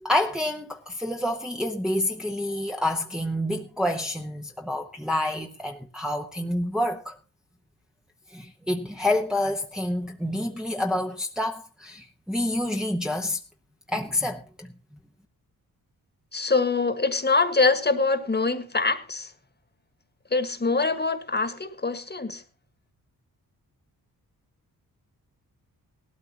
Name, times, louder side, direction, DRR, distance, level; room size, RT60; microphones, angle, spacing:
voice 1, 0.0-7.2 8.3-13.4 13.9-14.7, left 1 dB, ahead, 1.0 m, -28 dB
voice 2, 16.3-19.3 20.3-22.4, left 3 dB, 25° left, 1.6 m, -24 dB
17.5 x 12.5 x 2.9 m
cardioid pair, 85°, 36 cm